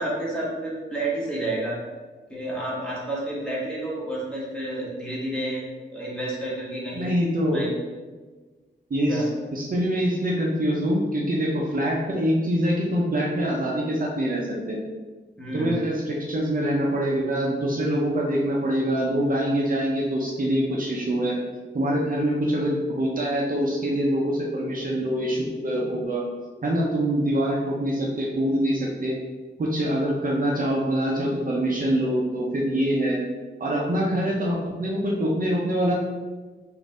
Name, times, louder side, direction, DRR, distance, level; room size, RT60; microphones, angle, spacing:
voice 1, 0.0-1.8 2.3-7.1 7.5-7.7 9.1-9.3 15.4-15.8, right 1 dB, 5° left, -6 dB, 1.1 m, -30 dB
voice 2, 7.0-7.6 8.9-9.2 9.5-14.8 15.5-21.4 21.7-26.2 26.6-29.2 29.6-33.2 33.6-35.9, equal, 45° right, -3 dB, 0.6 m, -24 dB
4.0 x 2.6 x 3.6 m, 1.3 s
wide cardioid pair, 120°, 19 cm